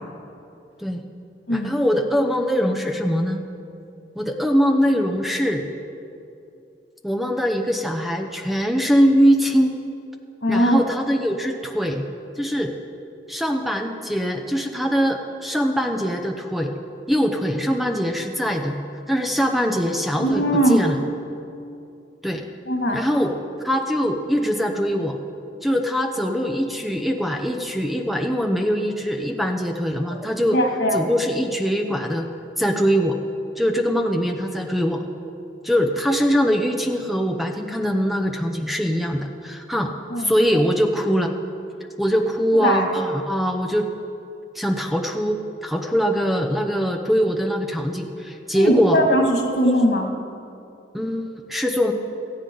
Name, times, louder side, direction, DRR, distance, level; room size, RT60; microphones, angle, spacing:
voice 1, 1.5-3.4 4.2-5.7 7.0-9.8 10.5-12.0 12.4-12.7 13.3-16.8 17.1-18.8 19.1-21.0 22.2-22.5 22.9-23.3 23.6-25.2 25.6-30.6 30.9-32.3 32.6-33.2 33.6-35.1 35.6-39.9 40.2-41.3 42.0-43.9 44.5-49.2 50.9-51.9, equal, ahead, 4 dB, 0.7 m, -22 dB
voice 2, 10.4-10.8 20.2-20.8 22.7-23.0 30.5-31.0 40.1-40.3 42.6-42.8 48.5-50.1, equal, 85° left, 1 dB, 2.4 m, -20 dB
17.5 x 14.5 x 3.9 m, 2.6 s
head